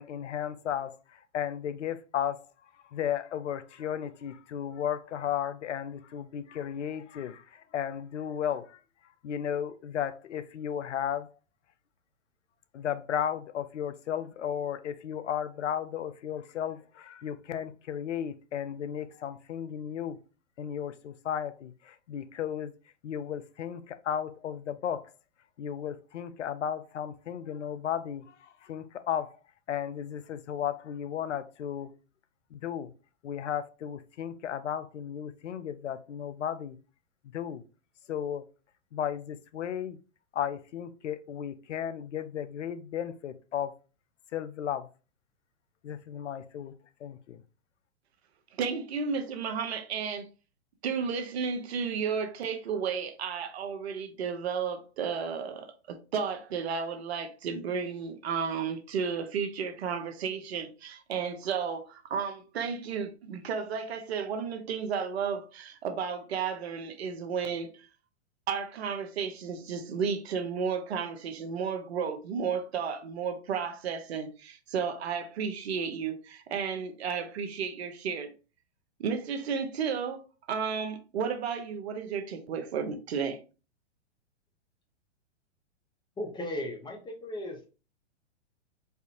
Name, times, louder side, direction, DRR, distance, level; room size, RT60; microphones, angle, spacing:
voice 1, 0.0-2.4 2.9-8.8 9.2-11.3 12.7-20.2 20.6-22.7 23.0-25.1 25.6-29.4 29.7-31.9 32.5-32.9 33.2-36.8 37.3-37.6 38.1-38.4 38.9-40.0 40.3-43.8 44.3-44.9 45.8-46.7 47.0-47.4, left 9 dB, 80° left, 0.5 m, -34 dB
voice 2, 48.6-50.3 50.8-67.9 68.5-78.3 79.0-80.2 80.5-83.4, right 6 dB, 60° right, 0.8 m, -33 dB
voice 3, 86.2-87.7, left 1 dB, 10° left, 0.9 m, -36 dB
4.4 x 2.5 x 2.8 m
hypercardioid pair, 115°, 36 cm